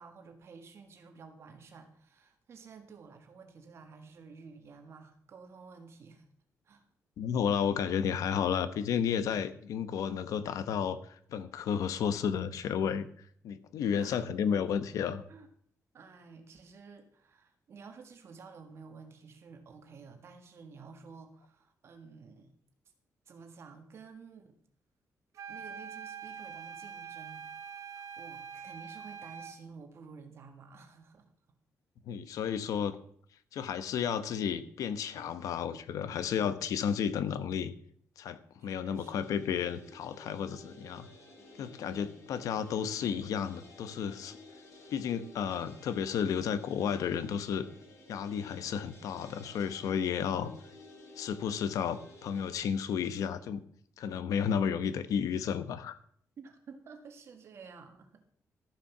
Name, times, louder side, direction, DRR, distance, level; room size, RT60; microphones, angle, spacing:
voice 1, 0.0-6.2 6.6-6.8 13.9-14.3 14.5-14.6 15.3-15.5 15.9-22.6 23.3-24.6 25.5-31.2 38.6-39.1 41.9-42.1 56.4-58.2, right 5 dB, 50° right, 6 dB, 1.6 m, -52 dB
voice 2, 7.2-13.1 13.4-15.2 32.1-33.0 33.5-37.7 38.2-41.1 41.6-44.4 44.9-47.7 48.1-50.5 51.2-53.6 54.0-56.0, left 7 dB, 80° left, 12 dB, 0.9 m, -32 dB
sound 1, 25.3-29.6, right 7 dB, 65° right, 1.0 m, -44 dB
sound 2, 38.9-52.5, left 2 dB, 65° left, 3.5 m, -53 dB
13.0 x 7.2 x 6.0 m, 0.63 s
wide cardioid pair, 155°, 6 cm